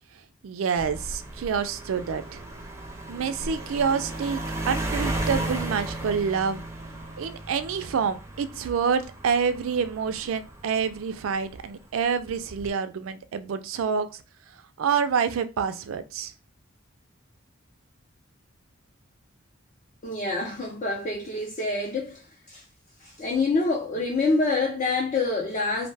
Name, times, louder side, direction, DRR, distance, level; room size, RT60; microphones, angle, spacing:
voice 1, 0.4-2.4 3.1-4.4 4.7-6.6 7.2-14.2 14.8-16.3, right 6 dB, 85° right, 0.4 m, -27 dB
sound 1, 0.8-11.5 12.3-12.7, right 1 dB, 15° right, 0.5 m, -35 dB
voice 2, 20.0-22.2 22.5-22.6 23.2-25.9, left 3 dB, 40° left, 0.5 m, -26 dB
2.6 x 2.1 x 3.2 m
head